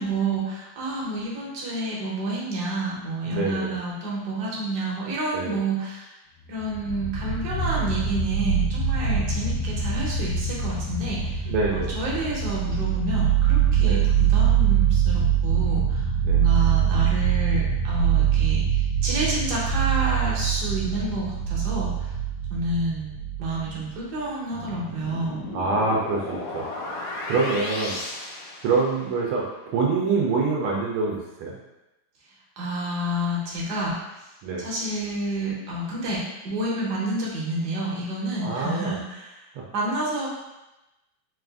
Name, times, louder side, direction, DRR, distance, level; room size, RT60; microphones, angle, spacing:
voice 1, 0.0-6.1 6.5-22.1 22.5-25.4 32.6-34.3 34.6-39.4 39.7-40.3, right 1 dB, 55° right, -5 dB, 1.4 m, -29 dB
voice 2, 3.3-3.7 5.3-5.6 11.5-11.9 13.8-14.1 16.2-16.5 25.5-27.0 27.3-28.0 28.6-31.6 34.4-34.6 38.4-39.0, right 4 dB, 80° right, -3 dB, 1.5 m, -25 dB
sound 1, 6.5-23.9, right 8 dB, 85° left, 0.8 m, -23 dB
sound 2, 24.5-29.3, left 2 dB, 70° left, 1.2 m, -35 dB
4.0 x 2.5 x 3.4 m, 0.98 s
omnidirectional pair, 2.4 m